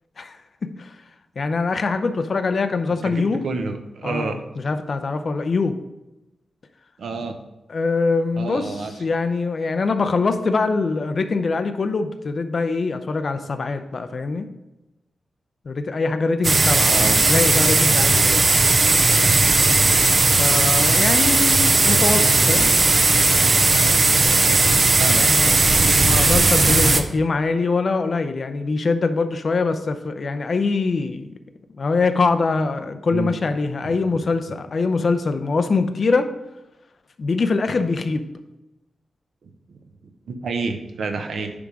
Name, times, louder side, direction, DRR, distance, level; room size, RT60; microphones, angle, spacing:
voice 1, 0.6-1.0 1.4-3.4 4.0-5.8 7.7-14.5 15.7-18.4 20.4-22.7 25.1-25.5 26.0-31.3 31.8-36.3 37.2-38.3, left 4 dB, 40° left, 9 dB, 0.6 m, -23 dB
voice 2, 3.0-4.4 7.0-7.3 8.4-8.9 16.9-17.2 25.0-25.6 26.5-27.2 33.1-33.3 33.8-34.2 40.3-41.5, right 4 dB, 75° right, 6 dB, 0.9 m, -29 dB
sound 1, 16.4-27.0, right 3 dB, 30° right, 0.5 m, -17 dB
9.7 x 3.6 x 4.9 m, 0.99 s
wide cardioid pair, 170°, 0 cm